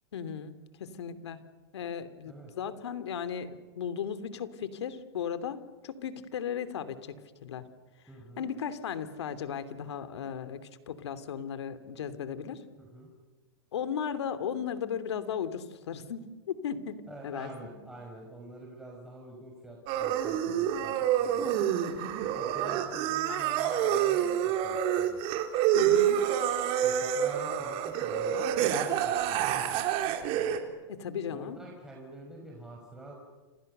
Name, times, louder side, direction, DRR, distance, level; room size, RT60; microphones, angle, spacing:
voice 1, 0.1-0.5 0.8-1.4 1.7-5.6 5.8-7.7 8.4-12.6 13.7-17.5 20.5-20.6 25.7-26.2 30.9-31.6, left 8 dB, 85° left, 11 dB, 3.0 m, -36 dB
voice 2, 8.1-8.5 12.5-13.1 17.1-21.9 22.4-25.2 26.8-29.5 31.3-33.1, right 1 dB, 5° right, -2 dB, 5.8 m, -47 dB
sound 1, 19.9-30.6, right 10 dB, 45° right, 3.9 m, -28 dB
30.0 x 27.5 x 6.8 m, 1.3 s
hypercardioid pair, 135°, 14 cm